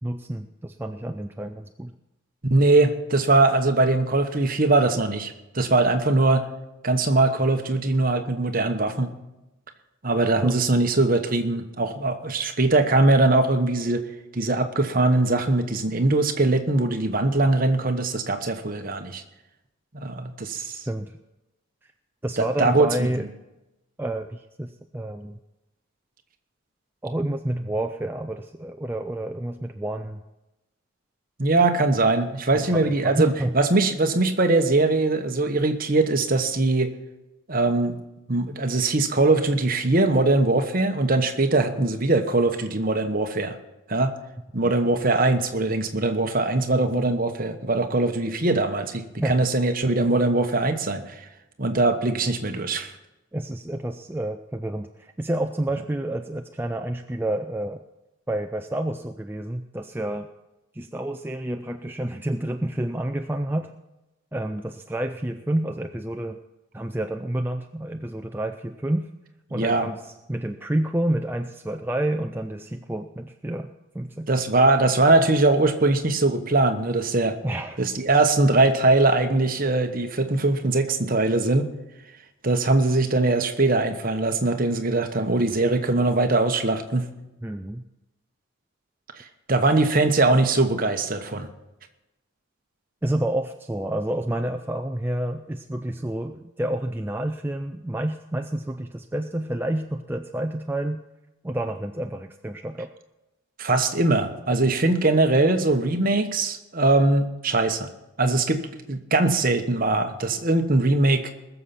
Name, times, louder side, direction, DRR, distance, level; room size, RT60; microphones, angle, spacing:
voice 1, 0.0-1.9 10.4-10.5 20.9-21.2 21.8-21.9 22.2-23.3 24.0-25.4 27.0-30.2 32.5-33.5 44.5-44.7 49.2-49.4 53.3-57.8 58.3-60.3 60.7-63.7 64.3-66.4 66.7-69.1 69.5-74.3 77.4-77.8 87.4-87.8 93.0-101.0 101.4-102.9, right 1 dB, 10° right, 5 dB, 0.4 m, -29 dB
voice 2, 2.5-6.5 6.8-9.1 10.0-14.0 14.3-19.2 19.9-20.8 22.4-22.9 31.4-36.9 37.5-38.0 38.3-43.6 43.9-44.1 44.5-51.2 51.6-52.9 69.5-69.9 74.3-77.4 77.8-81.7 82.4-87.1 89.2-91.5 103.6-107.9 108.2-111.3, right 2 dB, 40° right, 6 dB, 1.1 m, -21 dB
20.5 x 7.0 x 5.8 m, 0.97 s
head